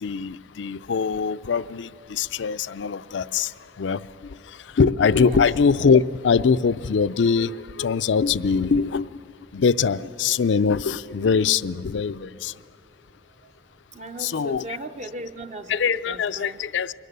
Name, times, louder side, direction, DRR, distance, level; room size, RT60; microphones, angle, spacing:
voice 1, 0.0-3.5 3.8-4.0 4.8-9.1 9.5-12.5 14.2-14.6 15.7-16.9, left 5 dB, 80° left, 16 dB, 0.4 m, -22 dB
voice 2, 13.9-16.6, right 2 dB, 40° right, 6 dB, 0.5 m, -38 dB
22.5 x 17.5 x 6.8 m, 2.3 s
head